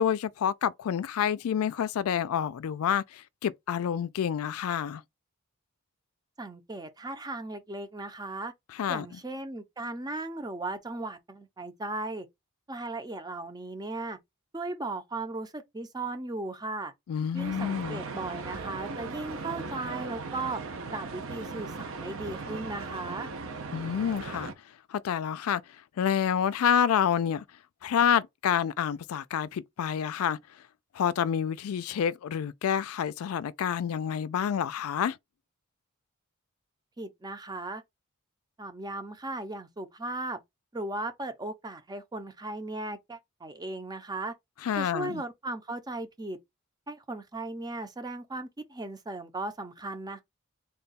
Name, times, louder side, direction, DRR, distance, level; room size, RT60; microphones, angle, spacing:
voice 1, 0.0-5.0 8.8-9.1 17.1-18.0 23.7-24.5 24.9-25.6 26.0-27.4 27.8-30.4 30.9-35.2 44.6-45.2, left 8 dB, 75° left, 0.3 m, -28 dB
voice 2, 6.4-8.5 8.9-12.3 12.7-14.2 14.5-16.9 17.3-20.6 20.9-23.3 37.0-37.8 38.6-40.4 40.7-44.3 44.8-46.4 46.9-50.2, right 2 dB, 20° right, 0.6 m, -37 dB
sound 1, 17.4-24.5, right 4 dB, 65° right, 0.6 m, -38 dB
3.6 x 2.3 x 4.0 m
head